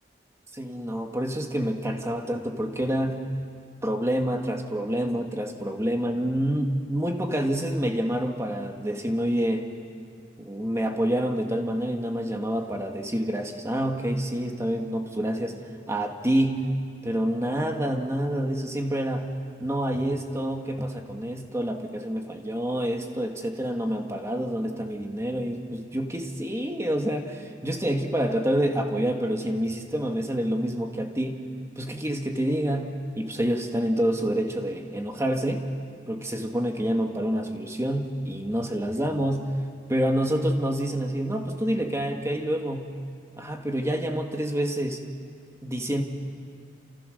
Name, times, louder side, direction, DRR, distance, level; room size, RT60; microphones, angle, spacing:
voice 1, 0.5-3.3 3.8-9.7 10.4-15.6 15.9-16.7 17.0-19.3 19.6-31.5 31.8-35.7 36.1-39.5 39.9-43.0 43.4-45.1 45.6-46.0, equal, 15° right, 3 dB, 1.7 m, -27 dB
30.0 x 27.5 x 6.5 m, 2.2 s
head